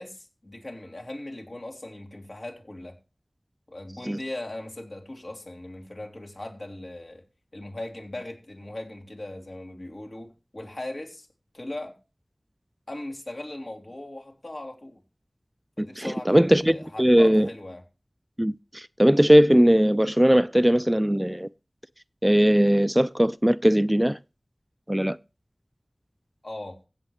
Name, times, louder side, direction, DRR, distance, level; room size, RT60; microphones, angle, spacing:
voice 1, 0.0-3.0 3.7-7.2 7.5-11.3 11.5-12.0 12.9-15.0 15.8-17.8 26.4-26.8, left 1 dB, 65° left, 3.1 m, -39 dB
voice 2, 15.8-17.5 18.4-21.5 22.2-24.2 24.9-25.2, equal, 10° right, 0.4 m, -19 dB
16.0 x 7.3 x 3.2 m
wide cardioid pair, 40°, 0 cm